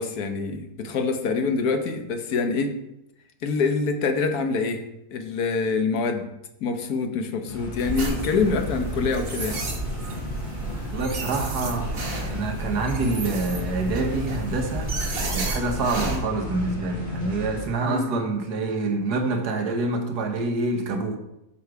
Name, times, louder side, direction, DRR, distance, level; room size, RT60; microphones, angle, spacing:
voice 1, 0.0-2.7 3.4-4.8 5.1-6.3 6.6-9.7 16.0-16.2 17.9-18.1, left 4 dB, 75° left, 1.4 m, -25 dB
sound 1, 7.5-17.6, left 5 dB, 30° left, 3.1 m, -34 dB
sound 2, 7.8-16.2, right 3 dB, 40° right, 1.2 m, -31 dB
voice 2, 10.9-14.9 15.3-21.2, right 3 dB, 85° right, 1.5 m, -27 dB
6.2 x 5.8 x 4.7 m
omnidirectional pair, 1.7 m